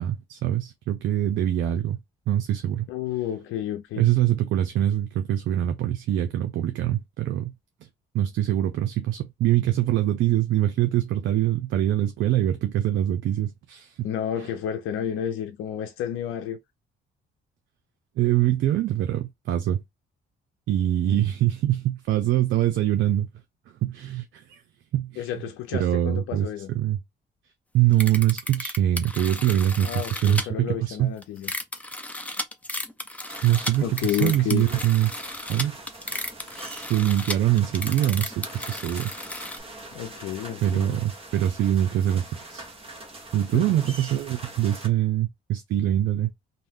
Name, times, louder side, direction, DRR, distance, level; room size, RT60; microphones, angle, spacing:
voice 1, 0.0-2.0 2.3-2.8 4.0-7.5 8.1-13.9 18.2-19.8 20.7-23.3 23.8-24.6 24.9-25.3 25.7-27.0 27.7-31.1 33.4-33.8 34.2-35.1 35.5-35.8 36.9-39.1 40.6-42.7 43.3-46.3, right 12 dB, 75° right, 0.5 m, -24 dB
voice 2, 2.9-4.1 14.0-16.6 21.1-21.3 25.2-26.7 29.8-31.5 33.8-34.7 39.9-41.0 43.5-43.8, left 10 dB, 85° left, 0.5 m, -31 dB
sound 1, 27.9-30.4 31.2-39.6, left 1 dB, 5° left, 0.5 m, -34 dB
sound 2, 33.3-44.9, right 2 dB, 30° right, 1.1 m, -43 dB
2.7 x 2.1 x 3.3 m
cardioid pair, 90°, 20 cm